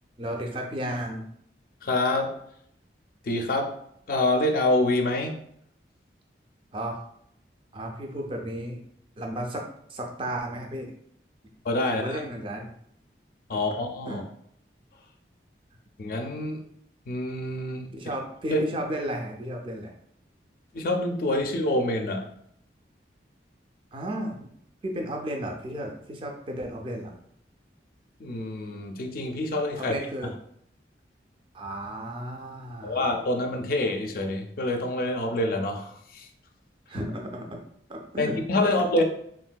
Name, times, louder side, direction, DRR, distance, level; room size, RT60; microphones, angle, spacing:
voice 1, 0.2-1.2 6.7-7.1 7.7-8.8 9.2-10.9 11.9-12.8 13.5-13.6 14.1-14.2 17.9-19.9 23.9-24.4 24.8-27.1 29.8-30.3 31.5-33.1 36.9-37.6 37.9-38.4 38.6-39.0, right 1 dB, 30° right, 2 dB, 0.4 m, -34 dB
voice 2, 1.8-2.4 3.2-3.7 4.1-5.4 11.6-12.2 13.5-14.2 16.0-16.6 17.1-17.9 18.5-18.6 20.7-22.3 28.2-29.9 32.8-36.3 38.2-39.0, left 1 dB, 50° left, 4 dB, 0.4 m, -26 dB
3.4 x 2.5 x 2.2 m, 0.70 s
head